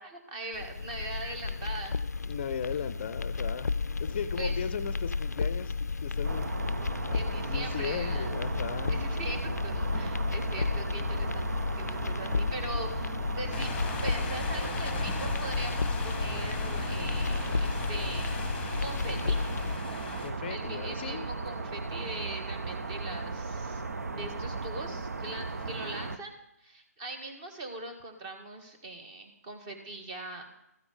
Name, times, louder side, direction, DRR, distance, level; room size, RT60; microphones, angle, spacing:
voice 1, 0.0-2.0 4.4-4.6 7.1-8.3 8.9-13.7 14.0-18.4 18.8-19.4 20.4-23.8 24.1-26.3 26.6-30.4, right 2 dB, 25° right, 4 dB, 1.8 m, -41 dB
sound 1, 0.5-19.8, left 4 dB, 85° left, 0.4 m, -32 dB
voice 2, 2.3-3.7 4.0-5.7 6.0-6.5 7.4-9.0 20.2-21.3 25.3-25.4 25.8-26.0, left 7 dB, 35° left, 13 dB, 0.5 m, -37 dB
sound 2, 6.2-26.2, right 3 dB, 70° right, 0.8 m, -36 dB
sound 3, 13.5-20.3, left 6 dB, 15° left, 1.1 m, -40 dB
13.5 x 7.0 x 5.1 m, 0.83 s
figure-of-eight pair, 150°, 9 cm